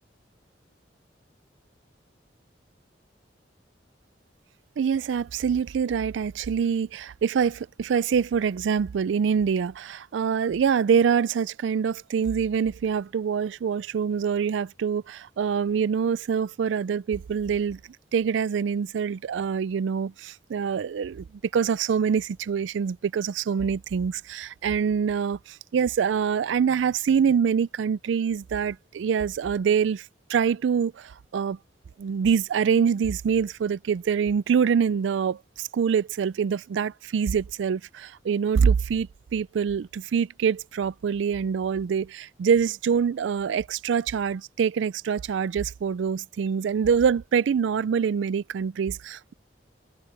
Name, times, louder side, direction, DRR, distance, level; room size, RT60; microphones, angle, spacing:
voice 1, 4.8-17.8 18.1-21.2 21.5-31.6 32.0-49.3, right 7 dB, 90° right, 0.4 m, -25 dB
head